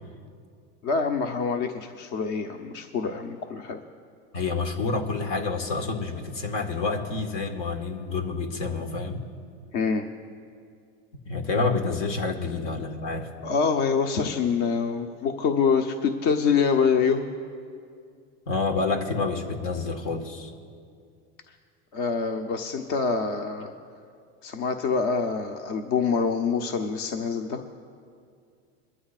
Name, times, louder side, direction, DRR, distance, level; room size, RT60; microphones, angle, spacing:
voice 1, 0.8-3.8 9.7-10.1 13.4-17.3 21.9-23.7 24.4-27.6, left 5 dB, 55° left, 5 dB, 0.9 m, -25 dB
voice 2, 4.3-9.2 11.3-13.3 18.5-20.5, left 3 dB, 75° left, 5 dB, 1.8 m, -28 dB
23.5 x 12.5 x 2.5 m, 2.3 s
supercardioid pair, 115°, 36 cm